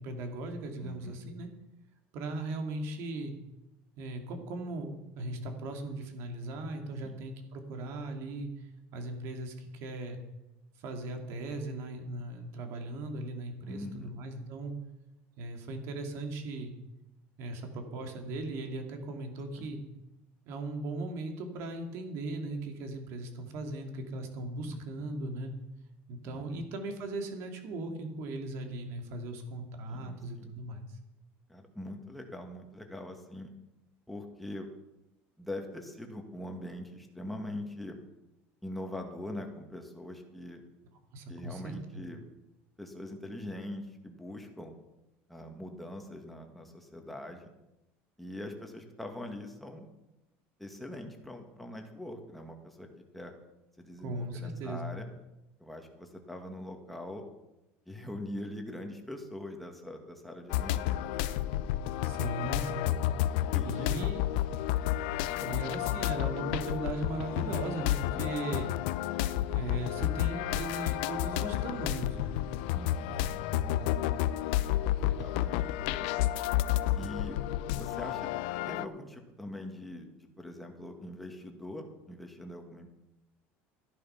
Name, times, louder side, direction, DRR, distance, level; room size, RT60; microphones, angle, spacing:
voice 1, 0.0-1.5 2.1-3.3 4.0-8.5 8.9-10.2 10.8-14.7 15.4-16.7 17.4-19.8 20.5-25.5 26.1-30.9 41.1-41.7 54.0-54.9 62.0-62.9 63.6-64.2 65.4-68.7 69.5-72.3 73.1-73.9, right 2 dB, 60° right, 4 dB, 2.8 m, -38 dB
voice 2, 0.8-1.2 7.0-7.2 13.7-14.2 19.5-19.7 24.7-25.2 26.2-26.6 29.9-30.5 31.5-33.5 34.1-34.7 35.4-38.0 38.6-40.6 41.3-42.3 42.8-44.7 45.3-47.5 48.2-49.9 50.6-53.3 53.8-55.1 55.6-57.2 57.9-61.1 63.5-63.9 65.4-65.7 68.1-68.4 72.7-73.2 75.0-76.4 77.0-77.4 77.7-78.3 78.7-82.9, left 1 dB, ahead, 2 dB, 2.0 m, -43 dB
sound 1, 60.5-78.9, left 13 dB, 80° left, 0.7 m, -31 dB
13.5 x 11.0 x 5.9 m, 0.95 s
cardioid pair, 145°, 5 cm